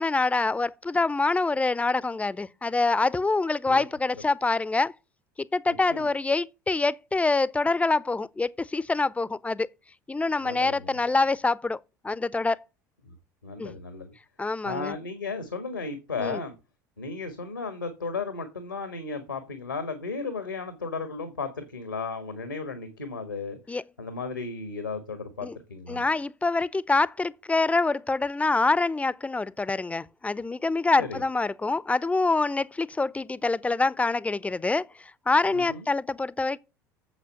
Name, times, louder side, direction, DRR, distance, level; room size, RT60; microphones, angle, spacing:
voice 1, 0.0-4.9 5.4-9.7 10.1-12.6 13.6-13.7 14.4-15.0 16.2-16.4 23.7-23.8 25.4-25.6 25.9-36.6, left 3 dB, 15° left, 0.6 m, -26 dB
voice 2, 5.7-6.1 10.4-10.9 13.0-13.1 13.4-14.1 14.6-16.5 17.0-23.6 24.0-26.1 31.0-31.2 35.5-35.8, left 4 dB, 90° left, 1.4 m, -35 dB
7.9 x 7.4 x 6.5 m
figure-of-eight pair, 70°, 10 cm